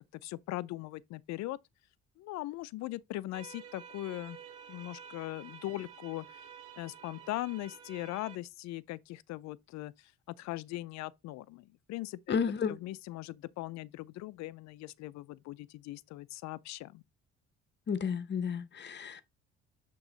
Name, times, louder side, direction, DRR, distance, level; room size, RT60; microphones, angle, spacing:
voice 1, 0.1-1.6 2.2-4.4 4.7-6.5 6.8-10.1 10.4-12.4 12.7-17.0, left 16 dB, 65° left, 0.5 m, -40 dB
sound 1, 3.3-8.4, right 8 dB, 90° right, 1.2 m, -51 dB
voice 2, 12.3-12.8 17.9-19.2, left 6 dB, 35° left, 0.8 m, -32 dB
8.0 x 3.0 x 3.8 m
supercardioid pair, 80°, 30 cm